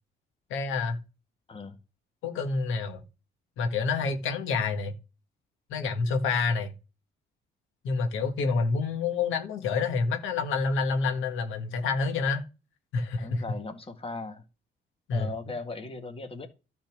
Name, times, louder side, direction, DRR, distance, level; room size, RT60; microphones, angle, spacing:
voice 1, 0.5-1.0 2.2-3.0 3.6-4.9 5.7-6.7 7.8-12.4 12.9-13.4 15.1-15.3, left 4 dB, 90° left, 1.7 m, -28 dB
voice 2, 13.2-14.4 15.1-16.5, left 3 dB, 30° left, 1.8 m, -38 dB
12.0 x 4.3 x 6.1 m
cardioid pair, 90°, 20 cm